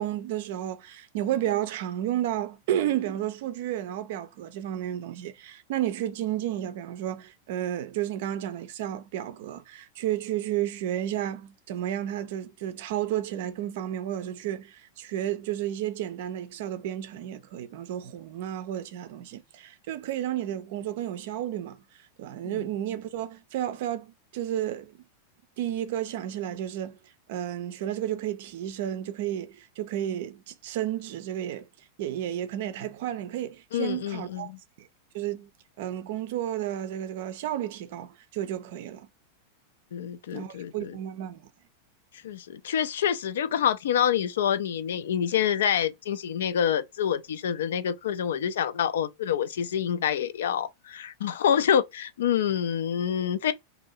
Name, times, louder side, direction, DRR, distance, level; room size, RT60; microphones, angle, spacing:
voice 1, 0.0-21.8 22.2-25.0 25.6-27.0 27.3-31.7 32.0-34.5 34.8-34.9 35.1-35.5 35.8-39.1 40.3-41.5, right 11 dB, 50° right, 0.5 m, -32 dB
voice 2, 33.7-34.6 39.9-41.0 42.1-53.5, left 9 dB, 60° left, 0.3 m, -27 dB
2.7 x 2.6 x 4.0 m
figure-of-eight pair, 90°, 0 cm